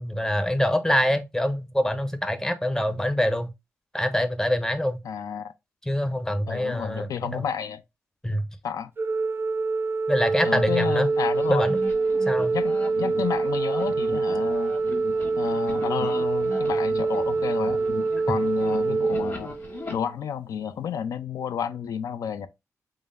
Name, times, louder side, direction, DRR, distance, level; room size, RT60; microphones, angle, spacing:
voice 1, 0.0-3.5 3.9-5.0 5.9-7.5 8.2-8.4 10.1-11.1 11.5-11.8 12.3-12.6, equal, 10° left, 0.6 m, -25 dB
voice 2, 5.0-5.5 6.5-7.8 8.6-8.9 10.4-11.7 12.5-14.7 15.4-17.8 18.3-19.5 19.9-22.5, left 8 dB, 80° left, 0.4 m, -31 dB
Organ, 9.0-20.0, right 3 dB, 40° right, 0.4 m, -25 dB
sound 1, 10.9-19.9, left 2 dB, 45° left, 1.4 m, -39 dB
3.7 x 3.3 x 2.5 m
cardioid pair, 100°, 6 cm